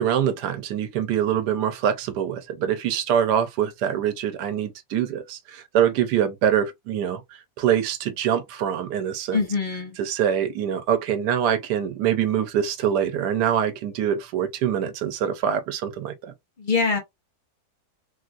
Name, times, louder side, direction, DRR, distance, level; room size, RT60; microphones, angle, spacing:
voice 1, 0.0-7.2 7.6-9.5 10.0-16.3, right 9 dB, 90° right, 1.3 m, -24 dB
voice 2, 9.3-9.9 16.6-17.0, left 4 dB, 35° left, 0.9 m, -23 dB
3.3 x 2.5 x 2.4 m
omnidirectional pair, 1.7 m